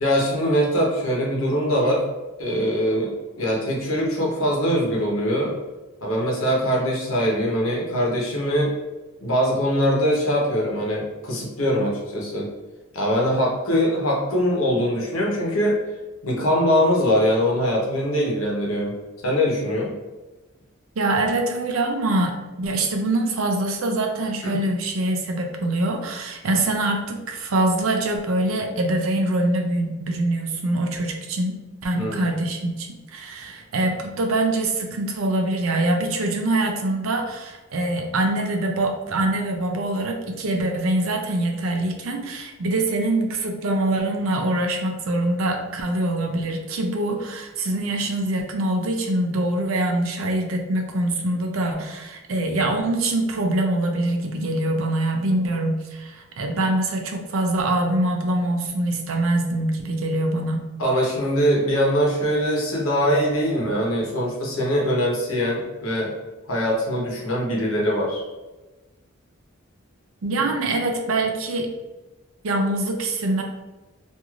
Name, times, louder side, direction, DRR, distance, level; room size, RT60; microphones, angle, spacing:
voice 1, 0.0-2.0 2.4-3.1 3.4-5.6 6.0-8.7 9.2-12.5 12.9-15.8 16.2-18.9 19.2-19.9 24.4-24.6 31.9-32.2 60.8-66.1 66.5-68.2, equal, 80° left, -3 dB, 0.9 m, -22 dB
voice 2, 21.0-60.7 70.2-71.7 72.4-73.4, right 2 dB, 75° right, 3 dB, 0.5 m, -24 dB
3.1 x 2.5 x 2.4 m, 1.1 s
head